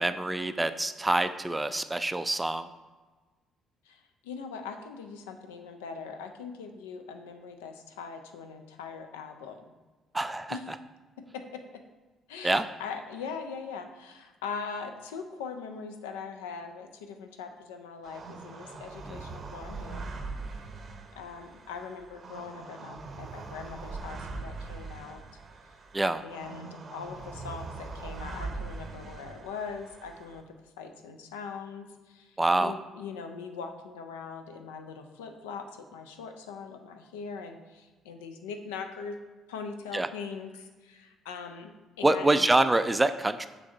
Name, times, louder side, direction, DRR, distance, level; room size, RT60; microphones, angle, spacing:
voice 1, 0.0-2.7 10.1-10.6 12.4-12.7 19.1-19.2 25.9-26.2 32.4-32.7 39.9-40.1 42.0-43.5, right 2 dB, 15° right, 11 dB, 0.3 m, -26 dB
voice 2, 3.9-9.6 10.5-10.6 11.2-11.8 12.3-20.1 21.2-25.3 26.2-39.2 39.5-41.7 42.0-42.5, left 5 dB, 70° left, 6 dB, 0.4 m, -41 dB
sound 1, 18.0-30.4, right 3 dB, 40° right, 0.7 m, -41 dB
6.0 x 3.3 x 5.2 m, 1.3 s
figure-of-eight pair, 45°, 0 cm